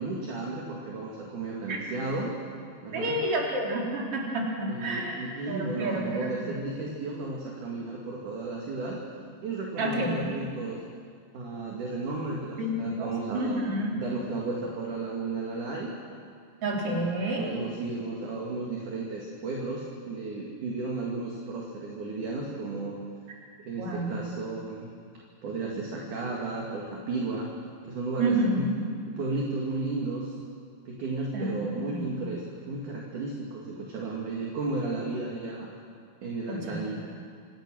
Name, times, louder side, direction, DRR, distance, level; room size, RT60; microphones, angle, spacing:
voice 1, 0.0-2.3 2.8-3.2 4.7-9.0 9.4-10.8 11.3-15.9 16.8-23.0 23.6-24.9 25.4-27.5 27.8-28.7 29.1-30.4 30.8-35.7 36.2-37.0, right 3 dB, 50° right, -2 dB, 3.3 m, -34 dB
voice 2, 2.9-5.2 5.5-6.5 9.7-10.4 12.6-13.9 16.6-17.5 23.8-24.2 28.2-28.8 31.3-32.3 36.5-36.8, right 1 dB, 35° right, -2 dB, 4.2 m, -29 dB
26.5 x 20.0 x 6.4 m, 2.2 s
omnidirectional pair, 5.2 m